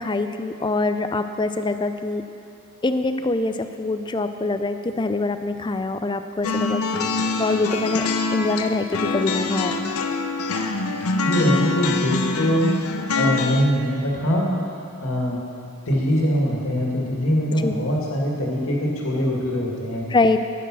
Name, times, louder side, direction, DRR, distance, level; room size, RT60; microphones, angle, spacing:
voice 1, 0.0-2.2 2.8-10.0 17.6-17.9 20.1-20.4, left 2 dB, 20° left, 9 dB, 0.4 m, -24 dB
sound 1, 6.4-13.6, left 3 dB, 85° left, 0.7 m, -25 dB
voice 2, 11.2-12.8 13.1-14.5 15.0-15.4 15.9-20.1, equal, 65° left, -3 dB, 2.2 m, -22 dB
10.0 x 9.1 x 6.3 m, 2.6 s
head